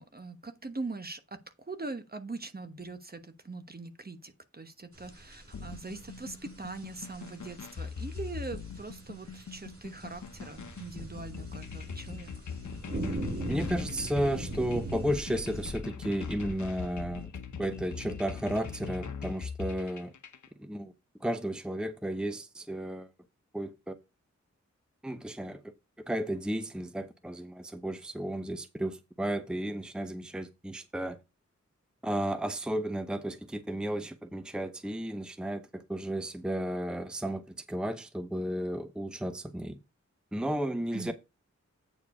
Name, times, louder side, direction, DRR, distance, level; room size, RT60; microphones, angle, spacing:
voice 1, 0.0-12.3 40.9-41.1, right 3 dB, 30° right, 1.1 m, -42 dB
sound 1, 4.9-15.7, right 1 dB, 50° right, 5.8 m, -41 dB
sound 2, 5.5-20.5, left 5 dB, 75° left, 0.9 m, -41 dB
voice 2, 13.5-17.3 17.6-20.1 20.6-20.9 21.2-23.1 23.5-23.9 25.0-25.6 26.1-31.2 32.0-39.8 40.3-41.1, right 1 dB, 5° right, 0.8 m, -33 dB
8.8 x 4.6 x 4.8 m
cardioid pair, 45°, 29 cm